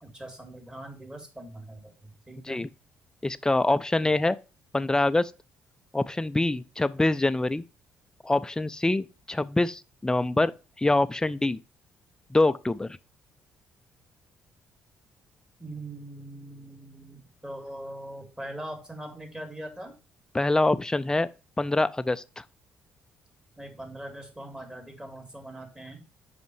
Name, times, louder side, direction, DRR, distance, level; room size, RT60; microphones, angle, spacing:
voice 1, 0.0-2.6 15.6-19.9 23.6-26.0, right 1 dB, 15° right, 2.4 m, -41 dB
voice 2, 3.2-4.4 4.7-5.3 5.9-7.6 8.2-10.5 10.8-11.6 12.3-13.0 20.3-21.3 21.6-22.4, left 2 dB, 15° left, 0.5 m, -25 dB
5.3 x 5.1 x 4.6 m
hypercardioid pair, 45°, 5 cm